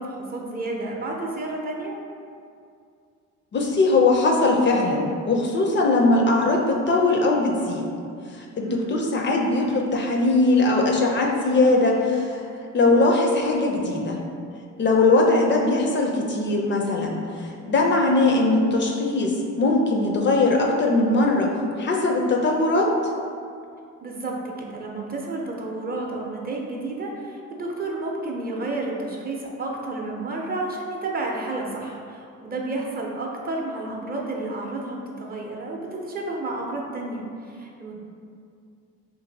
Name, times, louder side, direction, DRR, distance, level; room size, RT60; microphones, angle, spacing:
voice 1, 0.0-2.0 8.6-9.0 24.0-38.0, right 2 dB, 30° right, -1 dB, 0.5 m, -31 dB
voice 2, 3.5-7.9 8.4-12.4 12.7-14.2 14.8-21.5 21.8-22.9, left 2 dB, 40° left, 0 dB, 0.4 m, -20 dB
2.6 x 2.5 x 3.9 m, 2.4 s
cardioid pair, 90°, 30 cm